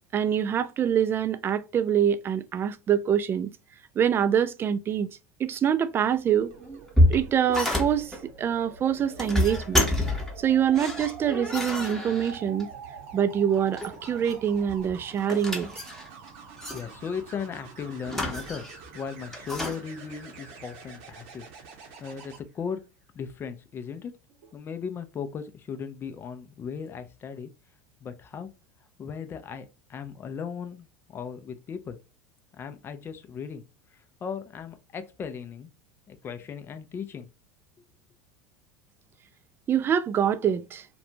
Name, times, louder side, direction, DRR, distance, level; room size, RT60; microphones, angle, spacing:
voice 1, 0.0-3.5 4.0-5.1 5.4-6.5 7.1-9.9 10.4-12.7 13.1-15.7 39.7-40.9, right 9 dB, 30° right, 0.3 m, -25 dB
sound 1, 6.3-22.4 24.3-24.6, right 5 dB, 60° right, 0.7 m, -46 dB
sound 2, 6.6-8.2 9.0-10.4 10.8-12.6 13.6-14.4 14.7-16.3 16.6-16.8 18.1-18.9 19.3-19.8, left 1 dB, 5° left, 0.9 m, -27 dB
voice 2, 16.7-18.6 18.9-21.5 22.0-22.8 23.1-24.1 24.5-27.5 28.0-28.5 29.0-32.0 32.6-33.6 34.2-35.7 36.1-37.3, left 6 dB, 30° left, 0.5 m, -37 dB
2.5 x 2.2 x 2.7 m
hypercardioid pair, 80°, 8 cm